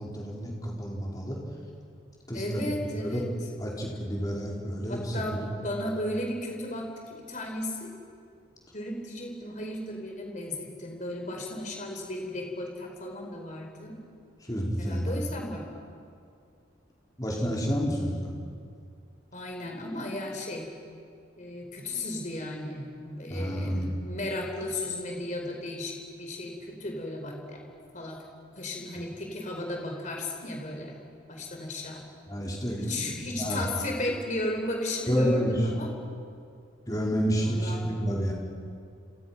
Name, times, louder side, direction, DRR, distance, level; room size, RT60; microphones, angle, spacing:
voice 1, 0.0-1.4 2.3-2.7 2.9-3.3 3.6-5.6 14.5-15.1 17.2-18.3 23.3-24.0 32.3-33.6 35.1-35.5 36.9-38.3, equal, 20° left, -3 dB, 4.6 m, -30 dB
voice 2, 2.3-3.3 4.9-7.9 8.7-13.9 14.8-15.6 19.3-20.7 21.4-26.5 26.8-27.6 27.9-28.2 28.6-31.0 31.3-32.0 32.8-35.9 37.4-37.8, left 1 dB, 40° left, 1 dB, 4.6 m, -35 dB
30.0 x 27.0 x 5.9 m, 2.3 s
head